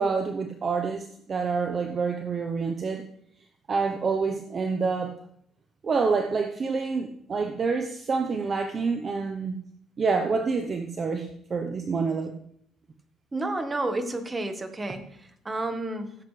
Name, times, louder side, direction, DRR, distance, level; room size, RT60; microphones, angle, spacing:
voice 1, 0.0-3.0 3.7-5.2 5.8-9.6 10.0-12.3, right 4 dB, 35° right, 5 dB, 0.9 m, -27 dB
voice 2, 13.3-16.2, right 2 dB, 20° right, 7 dB, 1.4 m, -31 dB
15.5 x 7.9 x 3.3 m, 0.69 s
cardioid pair, 125°, 0 cm